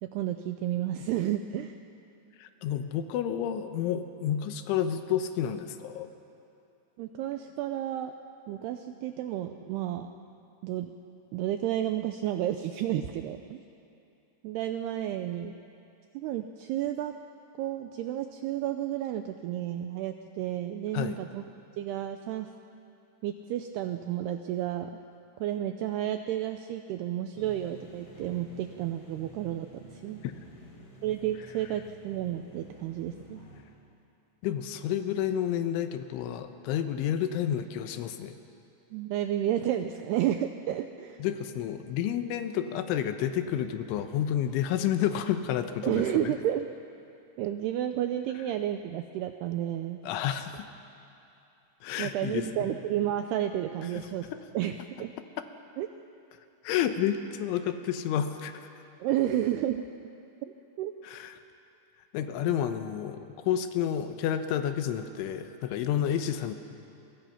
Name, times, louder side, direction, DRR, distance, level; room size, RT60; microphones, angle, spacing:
voice 1, 0.0-1.7 7.0-8.1 8.5-10.1 10.6-10.9 11.3-13.6 14.4-15.5 16.1-17.1 17.6-21.4 21.8-22.5 23.2-24.9 25.4-30.2 31.0-33.4 38.9-41.2 45.8-46.7 47.4-50.0 52.0-54.3 54.5-55.1 55.8-55.9 59.0-59.9 60.8-60.9, right 12 dB, 85° right, 7 dB, 2.3 m, -31 dB
voice 2, 2.4-6.1 20.9-21.2 30.2-30.4 34.4-38.3 41.2-46.3 50.0-50.7 51.8-52.5 54.3-54.4 56.6-58.7 61.0-61.4 62.1-66.5, left 10 dB, 85° left, 8 dB, 3.5 m, -30 dB
sound 1, 27.3-33.6, right 1 dB, 45° left, 5.1 m, -51 dB
28.5 x 23.5 x 5.8 m, 2.8 s
omnidirectional pair, 5.5 m